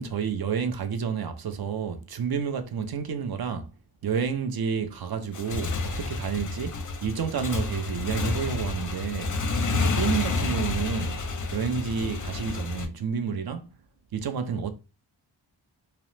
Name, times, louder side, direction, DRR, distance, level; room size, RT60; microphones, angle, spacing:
voice 1, 0.0-3.7 4.0-9.4 9.7-11.2 11.5-13.7 14.1-14.7, right 6 dB, 50° right, 0.5 m, -30 dB
Motorcycle / Engine, 5.2-12.9, left 3 dB, 40° left, 0.5 m, -29 dB
2.8 x 2.0 x 3.1 m
wide cardioid pair, 80°, 48 cm